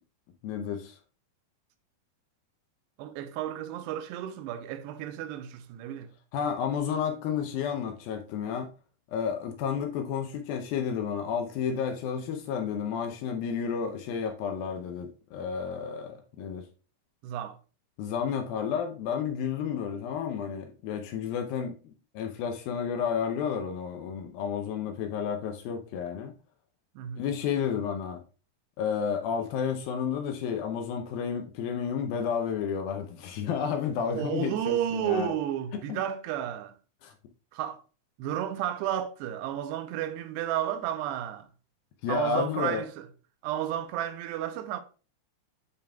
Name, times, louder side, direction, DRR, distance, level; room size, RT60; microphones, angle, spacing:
voice 1, 0.4-1.0 6.3-8.7 9.1-16.7 18.0-26.3 27.2-28.2 28.8-35.3 35.9-36.0 37.0-37.1 42.0-42.8, left 7 dB, 75° left, 2.3 m, -31 dB
voice 2, 3.0-6.1 17.2-17.6 27.0-27.2 34.1-36.8 37.5-37.8 38.2-41.5 42.1-43.1 43.4-44.8, right 11 dB, 85° right, 2.8 m, -32 dB
9.4 x 5.1 x 2.2 m
omnidirectional pair, 4.7 m